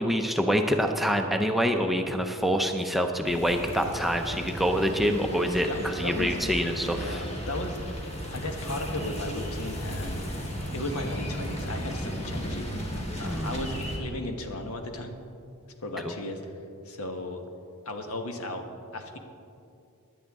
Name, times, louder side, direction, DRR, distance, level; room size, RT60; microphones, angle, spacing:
voice 1, 0.0-7.2 13.2-13.6 16.0-16.1, equal, ahead, 4 dB, 0.5 m, -26 dB
sound 1, 3.2-14.0, equal, 30° left, 1.6 m, -35 dB
voice 2, 5.7-6.4 6.9-8.0 8.3-10.5 10.7-12.7 13.2-15.1 15.8-16.4 16.8-17.4 17.8-18.6 18.9-19.2, left 1 dB, 75° left, 5 dB, 1.2 m, -35 dB
16.5 x 11.0 x 3.6 m, 2.6 s
head